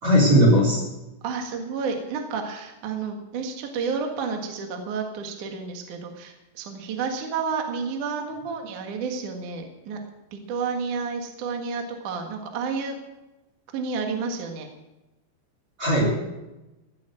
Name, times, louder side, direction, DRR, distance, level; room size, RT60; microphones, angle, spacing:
voice 1, 0.0-0.8 15.8-16.2, equal, 35° right, -1 dB, 4.5 m, -18 dB
voice 2, 1.2-10.0 10.3-12.9 13.7-14.7, right 5 dB, 60° right, 3 dB, 2.2 m, -30 dB
16.0 x 8.4 x 7.6 m, 1.0 s
omnidirectional pair, 5.9 m